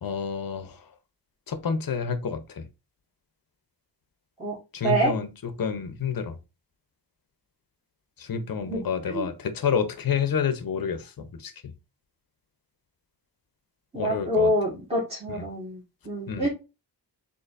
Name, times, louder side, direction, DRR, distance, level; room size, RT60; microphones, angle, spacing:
voice 1, 0.0-0.8 1.5-2.6 4.7-6.4 8.2-11.5 13.9-14.5 16.3-16.5, left 6 dB, 55° left, 0.8 m, -29 dB
voice 2, 4.8-5.1 8.7-8.8 9.1-9.3 13.9-16.5, right 1 dB, 15° right, 1.7 m, -26 dB
6.6 x 2.8 x 2.5 m
wide cardioid pair, 110°, 41 cm